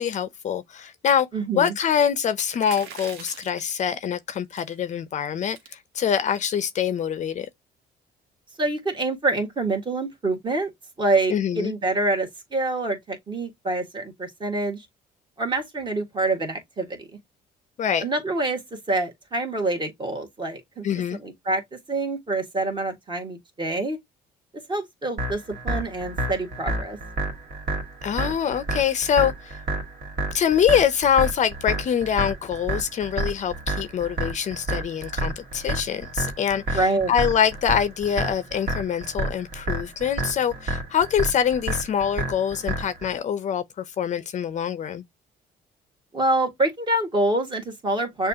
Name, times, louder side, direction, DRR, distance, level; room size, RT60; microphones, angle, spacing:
voice 1, 0.0-1.3 1.6-7.5 11.3-11.7 17.8-18.0 20.8-21.2 28.0-29.6 30.3-45.0, left 8 dB, 45° left, 0.5 m, -24 dB
voice 2, 1.3-1.7 8.6-10.7 11.0-14.8 15.4-17.1 18.0-18.6 18.9-20.8 21.2-24.0 24.7-27.0 36.7-37.1 46.1-48.3, right 2 dB, 30° right, 1.5 m, -26 dB
sound 1, 2.6-3.7 4.5-4.8 5.2-5.3 5.5-5.7 6.3-6.6, right 7 dB, 85° right, 1.1 m, -41 dB
sound 2, 25.2-43.2, right 1 dB, 60° right, 1.9 m, -30 dB
6.4 x 2.4 x 2.7 m
cardioid pair, 110°, 17 cm